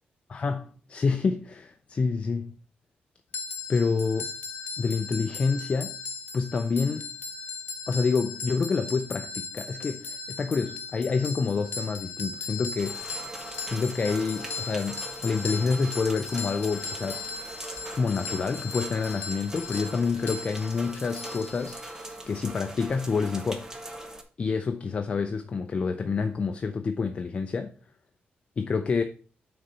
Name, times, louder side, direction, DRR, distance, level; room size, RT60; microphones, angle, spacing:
voice 1, 0.3-2.5 3.7-4.3 4.8-6.0 6.3-7.1 7.9-13.0 13.7-17.3 17.9-21.8 22.3-23.7 24.4-27.7 28.6-29.0, left 4 dB, 35° left, 0.5 m, -28 dB
sound 1, 3.3-22.1, left 4 dB, 75° left, 0.8 m, -38 dB
sound 2, 12.8-24.2, right 1 dB, 15° right, 0.8 m, -41 dB
6.3 x 4.0 x 5.5 m
wide cardioid pair, 135°, 3 cm